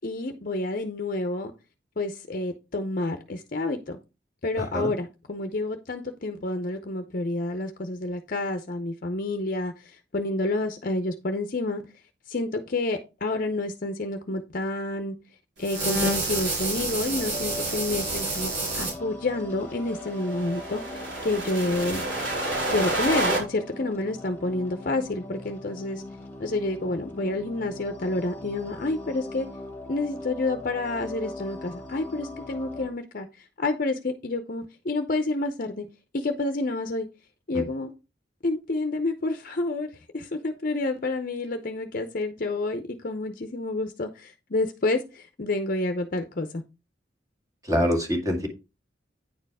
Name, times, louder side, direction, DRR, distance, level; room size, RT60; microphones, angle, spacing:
voice 1, 0.0-1.5 2.0-4.0 4.4-11.8 12.3-15.1 15.6-18.5 18.8-22.0 22.7-26.0 26.4-29.5 29.9-35.8 36.1-37.1 37.5-37.9 38.4-46.6, left 2 dB, 50° left, 0.7 m, -29 dB
voice 2, 4.6-4.9 37.5-37.6 47.6-48.5, equal, 20° right, 2.1 m, -25 dB
sound 1, 15.6-18.9 20.0-23.4, right 2 dB, 85° right, 4.2 m, -29 dB
sound 2, 17.2-32.9, left 1 dB, 10° left, 1.8 m, -40 dB
9.5 x 4.6 x 4.7 m
head